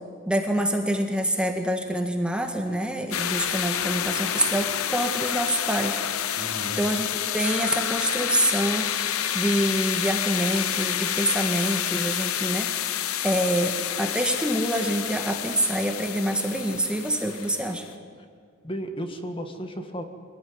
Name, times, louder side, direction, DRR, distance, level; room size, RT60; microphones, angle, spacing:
voice 1, 0.3-6.0 6.2-6.5 6.8-7.1 7.3-12.7 13.2-17.8, right 1 dB, 5° right, 4 dB, 1.6 m, -26 dB
sound 1, 3.1-17.9, left 10 dB, 80° left, 0.9 m, -29 dB
voice 2, 6.4-6.8 18.1-18.3 18.6-20.0, equal, 25° left, 6 dB, 1.8 m, -34 dB
24.5 x 17.5 x 9.6 m, 2.2 s
head